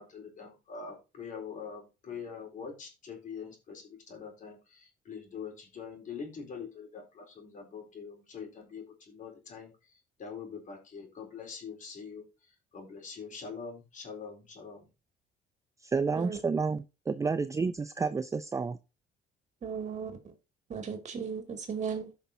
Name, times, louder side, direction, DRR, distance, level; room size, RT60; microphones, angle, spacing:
voice 1, 0.0-14.9, left 6 dB, 50° left, 2 dB, 3.9 m, -44 dB
voice 2, 15.9-18.8, right 4 dB, 20° right, 12 dB, 0.5 m, -30 dB
voice 3, 19.6-20.1 20.7-22.1, right 6 dB, 45° right, 5 dB, 2.5 m, -36 dB
14.5 x 5.8 x 2.7 m, 0.28 s
cardioid pair, 110°, 17 cm